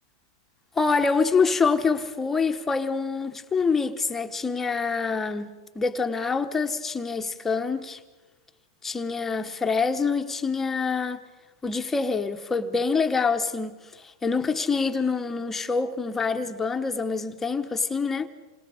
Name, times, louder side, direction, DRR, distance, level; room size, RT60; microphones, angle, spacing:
voice 1, 0.7-5.5 5.7-8.0 8.8-11.2 11.6-18.3, left 4 dB, 15° left, 1.1 m, -26 dB
28.0 x 25.5 x 5.1 m
hypercardioid pair, 130°, 2 cm